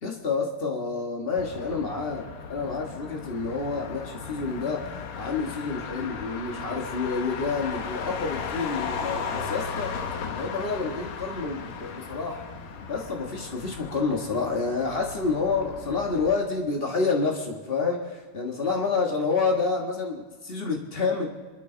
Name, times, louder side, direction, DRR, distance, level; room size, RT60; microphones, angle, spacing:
voice 1, 0.0-9.9 10.3-12.5 12.9-21.3, left 4 dB, 65° left, 1 dB, 0.5 m, -28 dB
Motor vehicle (road), 1.4-16.4, left 6 dB, 85° left, 2.9 m, -36 dB
27.0 x 12.5 x 3.9 m, 1.4 s
omnidirectional pair, 3.7 m